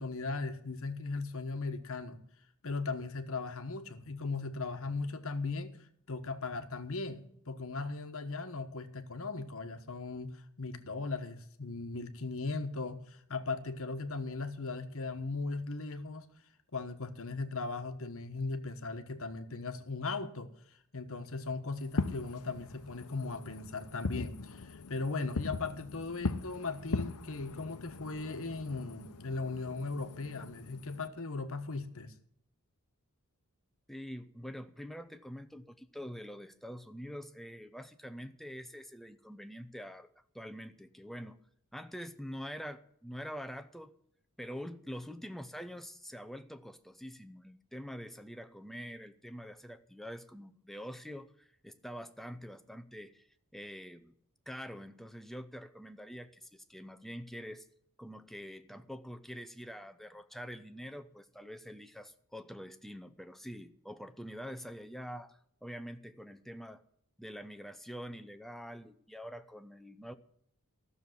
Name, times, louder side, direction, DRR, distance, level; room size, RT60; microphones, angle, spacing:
voice 1, 0.0-2.2 2.6-5.8 6.1-16.3 16.7-32.1, left 3 dB, 65° left, 8 dB, 1.2 m, -38 dB
Fireworks, 21.8-31.1, left 3 dB, 85° left, 0.8 m, -40 dB
voice 2, 33.9-40.1 40.3-41.4 41.7-44.0 44.4-53.3 53.5-54.2 54.5-57.7 58.0-66.8 67.2-70.1, equal, ahead, 9 dB, 0.7 m, -45 dB
14.0 x 6.9 x 9.3 m, 0.68 s
head